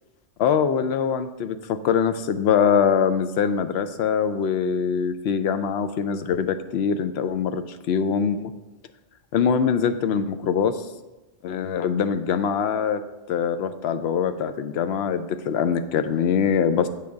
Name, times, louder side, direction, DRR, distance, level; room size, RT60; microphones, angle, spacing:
voice 1, 0.4-8.5 9.3-10.9 11.4-13.0 13.3-16.9, left 7 dB, 65° left, 10 dB, 0.8 m, -23 dB
8.5 x 3.5 x 6.4 m, 1.1 s
omnidirectional pair, 1.3 m